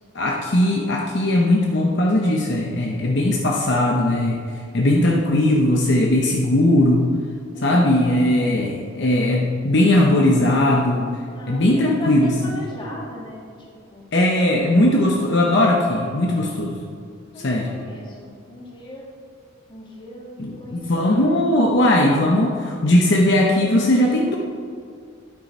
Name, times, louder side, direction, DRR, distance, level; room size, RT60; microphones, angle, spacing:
voice 1, 0.1-4.4 4.7-7.1 7.6-11.1 11.5-12.6 14.1-16.8 17.4-17.7 20.4-24.4, left 1 dB, 55° left, -1 dB, 0.8 m, -18 dB
voice 2, 7.5-8.2 11.3-13.4 13.9-14.0 14.9-15.4 17.3-19.1 19.7-21.5, equal, 25° left, -3 dB, 1.7 m, -38 dB
10.5 x 8.4 x 4.3 m, 2.2 s
head